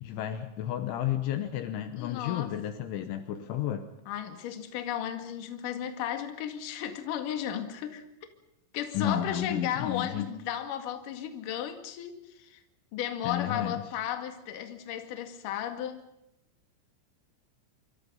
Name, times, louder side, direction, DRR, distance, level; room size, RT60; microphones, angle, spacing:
voice 1, 0.0-3.9 8.9-10.3 13.2-13.8, left 11 dB, 75° left, 8 dB, 3.2 m, -32 dB
voice 2, 2.0-2.6 4.1-8.0 8.7-12.6 12.9-16.1, left 10 dB, 55° left, 6 dB, 2.8 m, -34 dB
26.0 x 25.0 x 5.5 m, 0.84 s
omnidirectional pair, 6.0 m